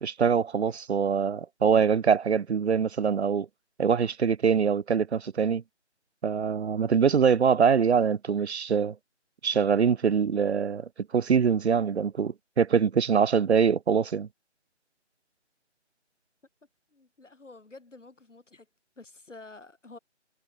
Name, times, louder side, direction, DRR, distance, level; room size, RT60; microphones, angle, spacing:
voice 1, 0.0-3.5 3.8-5.6 6.2-8.9 9.4-14.3, right 6 dB, 65° right, 0.7 m, -24 dB
voice 2, 16.9-18.7 19.0-20.0, left 3 dB, 90° left, 4.2 m, -49 dB
figure-of-eight pair, 170°, 36 cm